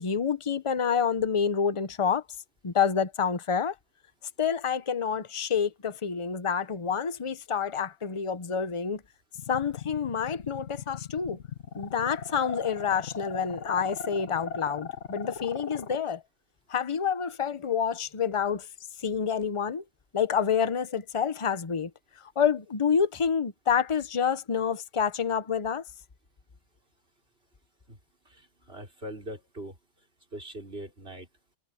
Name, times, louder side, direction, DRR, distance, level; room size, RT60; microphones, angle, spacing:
voice 1, 0.0-2.2 2.6-3.7 4.4-9.0 9.5-11.4 11.7-16.2 16.7-18.7 19.0-19.8 20.1-21.9 22.2-25.8, left 7 dB, 30° left, 0.9 m, -28 dB
sound 1, 9.4-16.0, left 6 dB, 75° left, 1.4 m, -38 dB
voice 2, 28.2-29.8 30.3-31.3, right 1 dB, 55° right, 5.2 m, -41 dB
omnidirectional pair, 1.2 m